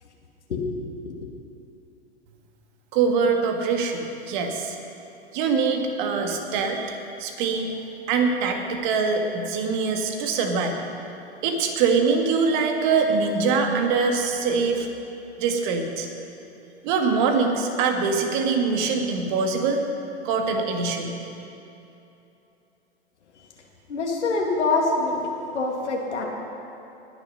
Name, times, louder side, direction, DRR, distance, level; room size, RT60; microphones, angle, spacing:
voice 1, 2.9-4.8 5.3-7.7 8.1-10.8 11.4-14.9 15.4-16.1 16.8-19.8 20.2-21.1, right 4 dB, 45° right, 4 dB, 1.7 m, -23 dB
voice 2, 23.9-25.2 25.5-26.3, left 3 dB, 85° left, -1 dB, 2.2 m, -25 dB
19.5 x 7.1 x 5.5 m, 2.9 s
hypercardioid pair, 120°, 34 cm